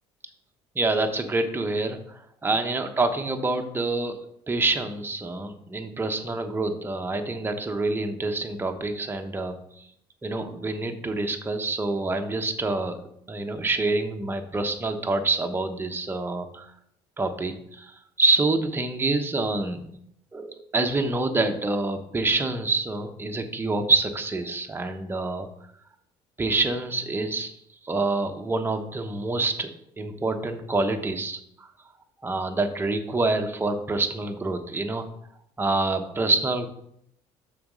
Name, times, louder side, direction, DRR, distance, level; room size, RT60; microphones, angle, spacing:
voice 1, 0.7-4.2 4.5-9.8 10.2-13.0 13.3-16.7 17.2-19.9 20.3-25.5 26.4-27.5 27.8-29.7 30.0-31.7 32.2-35.1 35.6-36.7, right 2 dB, 20° right, 5 dB, 1.0 m, -27 dB
6.1 x 4.1 x 6.2 m, 0.72 s
supercardioid pair, 85°, 12 cm